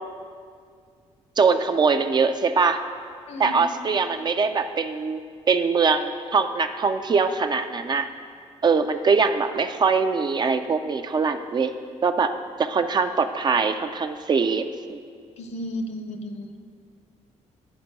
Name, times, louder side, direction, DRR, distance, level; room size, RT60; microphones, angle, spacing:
voice 1, 1.4-2.8 3.4-5.2 5.5-8.1 8.6-11.7 12.0-12.3 12.6-15.0, right 5 dB, 35° right, 8 dB, 0.4 m, -22 dB
voice 2, 3.3-3.6 15.4-16.5, left 1 dB, 60° left, 7 dB, 0.8 m, -33 dB
9.9 x 4.4 x 5.3 m, 2.1 s
cardioid pair, 90°, 12 cm